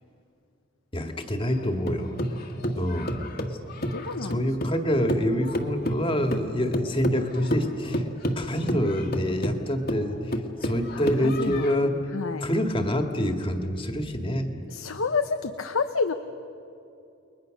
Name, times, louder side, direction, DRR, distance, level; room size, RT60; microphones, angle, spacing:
voice 1, 0.9-2.2 2.8-3.3 4.2-8.1 8.4-12.0 12.4-14.5, equal, 25° left, 5 dB, 1.9 m, -26 dB
sound 1, 1.4-4.8 5.1-11.8, equal, 50° left, 1.8 m, -30 dB
voice 2, 3.9-4.5 10.9-12.5 14.7-16.1, left 4 dB, 85° left, 8 dB, 0.9 m, -30 dB
30.0 x 22.0 x 6.5 m, 2.6 s
head